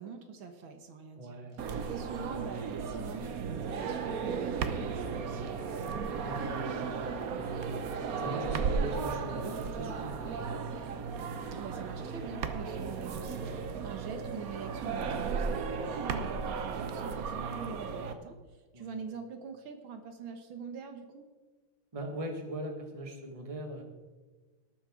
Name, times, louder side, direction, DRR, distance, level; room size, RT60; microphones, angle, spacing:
voice 1, 0.0-5.6 11.5-21.3, right 5 dB, 75° right, 6 dB, 1.9 m, -44 dB
voice 2, 1.2-1.6 6.1-7.8 8.2-10.6 13.7-13.9 18.7-18.9 21.9-23.8, right 1 dB, 20° right, 3 dB, 1.5 m, -40 dB
sound 1, 1.6-18.1, right 5 dB, 55° right, 1.1 m, -35 dB
19.0 x 8.9 x 3.8 m, 1.4 s
omnidirectional pair, 2.2 m